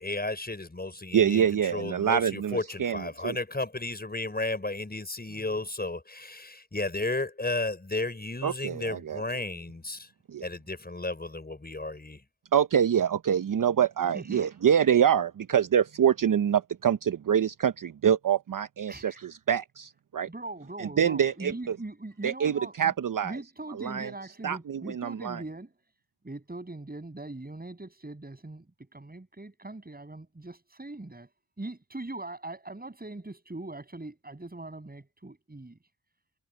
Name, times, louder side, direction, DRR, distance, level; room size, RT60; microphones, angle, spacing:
voice 1, 0.0-1.5 1.7-10.1 10.4-12.2, left 2 dB, 20° left, 5.9 m, -33 dB
voice 2, 1.1-3.4 8.4-9.2 10.3-10.4 12.5-20.3 20.8-21.8 22.2-23.3 23.8-24.1 24.4-25.4, right 8 dB, 45° right, 0.9 m, -25 dB
voice 3, 14.1-14.5 18.9-19.2 20.3-22.9 23.2-25.7 26.2-31.3 31.6-35.8, right 2 dB, 20° right, 8.0 m, -41 dB
supercardioid pair, 50°, 43 cm